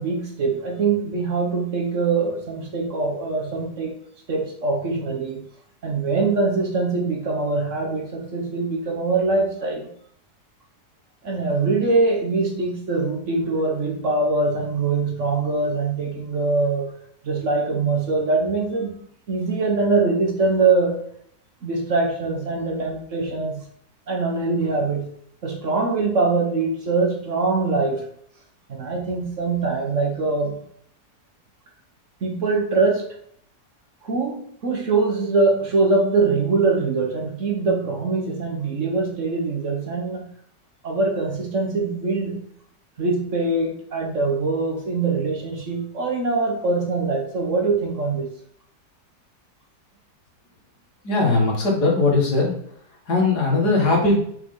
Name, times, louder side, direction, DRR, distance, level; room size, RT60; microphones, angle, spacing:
voice 1, 0.0-3.9 4.3-5.4 5.8-9.9 11.2-16.9 17.2-18.9 19.3-21.0 21.6-23.6 24.1-25.1 25.4-28.0 28.7-30.6 32.2-33.1 34.0-40.3 40.8-42.4 43.0-48.3, right 3 dB, 50° right, 1 dB, 1.4 m, -23 dB
voice 2, 51.0-52.5 53.1-54.2, left 3 dB, 70° left, -2 dB, 2.6 m, -19 dB
5.8 x 5.4 x 3.9 m, 0.65 s
omnidirectional pair, 1.8 m